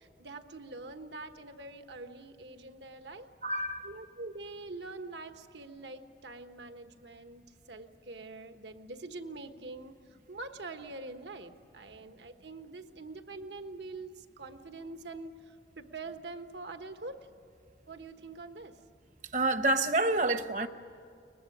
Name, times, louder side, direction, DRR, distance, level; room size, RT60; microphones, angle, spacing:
voice 1, 0.0-3.3 3.8-10.0 10.3-17.2 17.9-18.8, right 3 dB, 80° right, 7 dB, 1.3 m, -44 dB
voice 2, 3.4-3.9 19.3-20.7, right 2 dB, 45° right, 10 dB, 0.9 m, -28 dB
23.5 x 20.5 x 9.9 m, 2.3 s
head